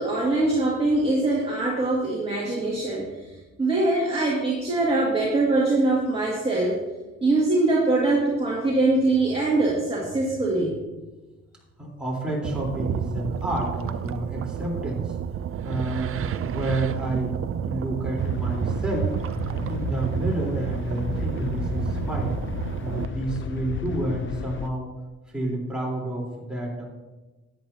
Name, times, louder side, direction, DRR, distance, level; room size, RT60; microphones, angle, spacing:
voice 1, 0.0-3.1 3.6-6.8 7.2-10.8, right 2 dB, 20° right, -5 dB, 2.3 m, -23 dB
voice 2, 11.8-15.2 15.6-19.1 19.5-22.4 22.8-24.9 25.3-26.8, right 1 dB, 5° right, -4 dB, 3.7 m, -30 dB
sound 1, 12.4-23.1, right 8 dB, 45° right, 0.5 m, -30 dB
sound 2, 18.2-24.7, left 6 dB, 40° left, 0.6 m, -34 dB
13.0 x 9.4 x 2.8 m, 1.1 s
cardioid pair, 90°, 30 cm